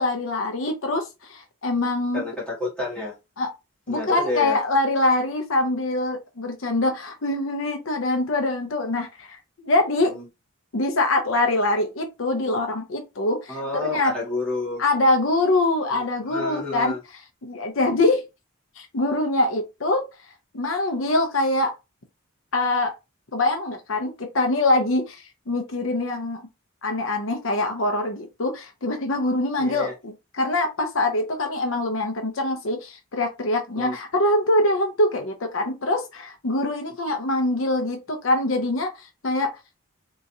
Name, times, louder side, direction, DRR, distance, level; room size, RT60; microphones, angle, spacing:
voice 1, 0.0-2.2 3.4-3.5 3.9-10.1 10.7-13.6 13.8-14.1 14.8-16.9 17.4-18.2 18.8-20.1 20.5-21.7 22.5-22.9 23.3-26.4 26.8-39.5, left 2 dB, 70° left, 0.7 m, -24 dB
voice 2, 2.1-3.1 3.9-4.6 10.0-10.2 13.5-14.8 15.9-17.0 29.6-29.9 33.7-34.0, left 3 dB, 5° left, 1.8 m, -30 dB
3.8 x 2.9 x 2.7 m
head